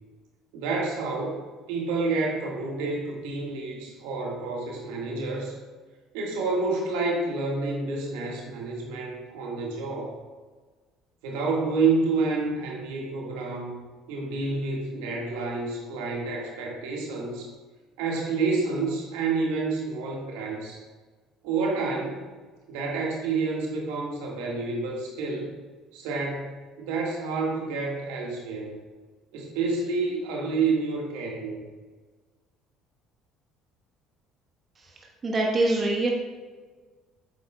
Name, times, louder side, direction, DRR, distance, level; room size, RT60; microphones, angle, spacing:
voice 1, 0.5-1.4 1.7-5.5 6.1-10.2 11.2-13.8 14.1-17.5 18.0-20.8 21.4-22.2 22.7-25.5 25.9-28.7 29.3-31.6, right 3 dB, 70° right, -2 dB, 1.7 m, -29 dB
voice 2, 35.2-36.1, right 2 dB, 35° right, 0 dB, 1.2 m, -23 dB
9.1 x 8.0 x 2.3 m, 1.4 s
hypercardioid pair, 60°, 0 cm